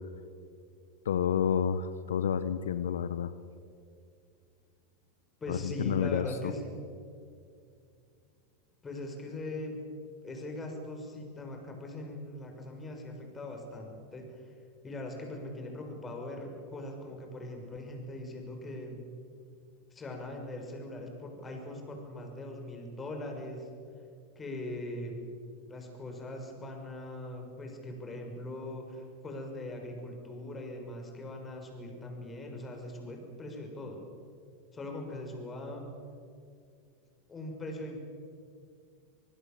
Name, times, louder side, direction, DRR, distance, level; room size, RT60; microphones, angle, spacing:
voice 1, 1.0-3.3 5.5-6.5, left 8 dB, 80° left, 13 dB, 0.8 m, -30 dB
voice 2, 5.4-6.7 8.8-9.8 10.2-14.5 14.8-19.0 19.9-23.7 24.4-25.2 25.7-34.0 34.7-35.9 37.3-38.0, left 1 dB, 20° left, 3 dB, 6.2 m, -41 dB
25.5 x 20.0 x 7.6 m, 2.4 s
hypercardioid pair, 95°, 0 cm